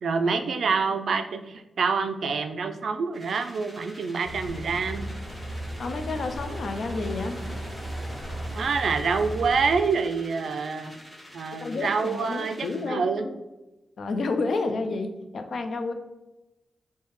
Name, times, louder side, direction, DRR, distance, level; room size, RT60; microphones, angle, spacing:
voice 1, 0.0-5.1 8.5-10.9 11.3-13.3, right 5 dB, 75° right, 7 dB, 0.3 m, -26 dB
sound 1, 3.1-12.9, equal, 5° left, 1.3 m, -48 dB
sound 2, 4.2-9.7, right 1 dB, 10° right, 1.3 m, -35 dB
voice 2, 5.8-7.4 11.6-13.3 14.0-15.9, left 3 dB, 70° left, 6 dB, 0.4 m, -30 dB
3.1 x 2.7 x 3.5 m, 1.0 s
wide cardioid pair, 110°, 0 cm